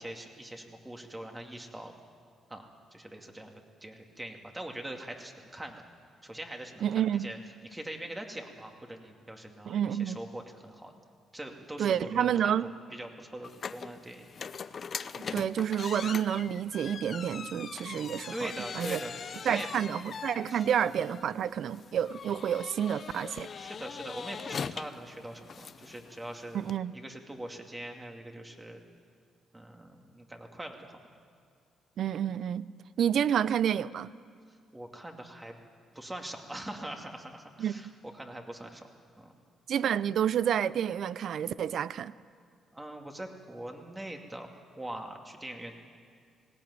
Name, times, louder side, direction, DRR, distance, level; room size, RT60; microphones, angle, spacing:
voice 1, 0.0-1.9 2.5-5.8 6.2-7.4 7.6-10.9 11.3-14.3 18.3-19.1 19.4-19.7 20.5-20.6 23.5-28.8 29.5-31.0 34.7-35.6 35.9-38.9 39.2-39.3 42.7-45.8, right 1 dB, 15° right, 3 dB, 2.4 m, -42 dB
voice 2, 6.8-7.3 9.7-10.2 11.8-12.7 15.3-19.0 19.4-23.5 26.5-26.9 32.0-32.7 33.0-34.1 37.6-37.7 39.7-42.1, right 9 dB, 65° right, 18 dB, 0.5 m, -29 dB
sound 1, 13.4-26.8, left 6 dB, 50° left, 0.7 m, -41 dB
19.0 x 17.0 x 9.7 m, 2.1 s
cardioid pair, 90°, 0 cm